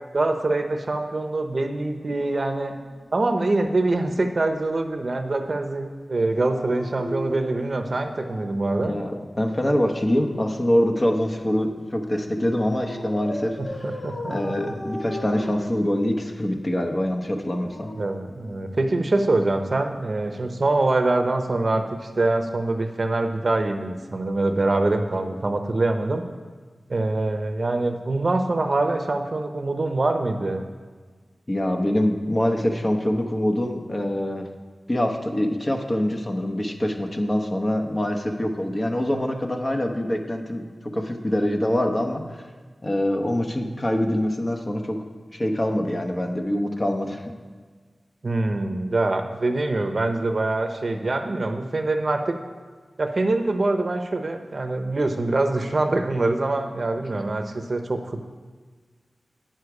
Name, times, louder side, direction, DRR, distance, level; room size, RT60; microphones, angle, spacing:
voice 1, 0.1-2.8 3.1-8.9 13.6-14.6 17.9-21.8 22.2-26.2 26.9-30.6 48.2-52.4 53.0-58.3, right 2 dB, 50° right, 6 dB, 0.7 m, -24 dB
Dog, 2.0-3.9 6.3-8.7 10.0-11.6 12.8-16.3 17.3-19.0 20.2-20.4, left 1 dB, 70° left, 1.3 m, -38 dB
voice 2, 8.9-13.6 14.3-17.9 31.5-34.5 34.9-40.6 40.9-42.4 42.8-45.0 45.3-47.2, left 1 dB, 35° left, 4 dB, 0.9 m, -24 dB
9.0 x 6.5 x 4.8 m, 1.5 s
wide cardioid pair, 75°, 0 cm